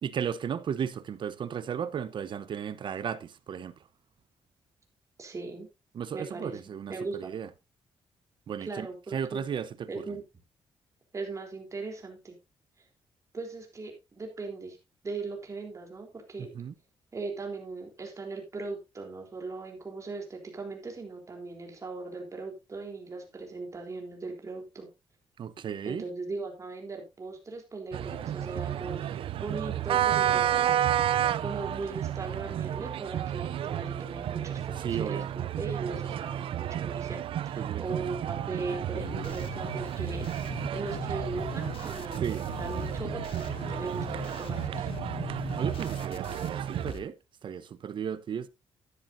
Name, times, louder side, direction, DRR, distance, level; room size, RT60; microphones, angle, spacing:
voice 1, 0.0-3.8 5.9-7.5 8.5-8.9 9.1-10.2 16.4-16.7 25.4-26.0 34.8-35.3 37.6-38.1 38.6-39.5 42.2-42.5 45.5-47.2 47.4-48.5, right 8 dB, 60° right, 0.9 m, -35 dB
voice 2, 5.2-5.7 6.1-6.6 6.9-7.3 8.6-9.5 9.9-10.2 11.1-12.4 12.8-12.9 13.3-14.8 15.0-16.5 17.1-24.9 25.8-30.9 31.4-35.3 35.6-40.3 40.7-42.2 42.6-44.9, right 3 dB, 35° right, 3.7 m, -39 dB
sound 1, 27.9-46.9, right 11 dB, 75° right, 0.5 m, -31 dB
sound 2, 39.0-47.0, left 7 dB, 75° left, 1.3 m, -41 dB
12.5 x 10.5 x 2.7 m
cardioid pair, 95°, 9 cm